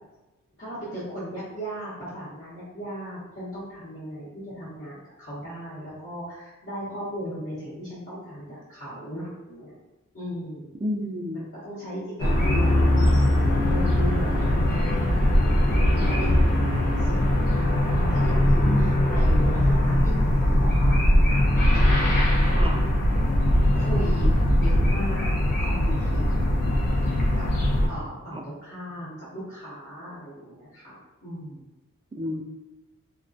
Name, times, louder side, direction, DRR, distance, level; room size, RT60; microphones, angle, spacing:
voice 1, 0.6-9.7 10.1-10.7 11.3-14.4 15.0-15.3 15.6-15.8 16.1-21.4 22.2-22.8 23.7-26.3 27.3-27.5 27.9-31.6, equal, 40° left, -13 dB, 0.9 m, -37 dB
voice 2, 10.8-11.5 15.8-16.1 18.6-19.1 22.5-22.8 28.3-28.4 32.2-32.4, equal, 20° right, 2 dB, 0.3 m, -31 dB
sound 1, 12.2-27.9, left 1 dB, 80° left, 0.7 m, -21 dB
2.3 x 2.1 x 2.5 m, 1.1 s
wide cardioid pair, 80°, 32 cm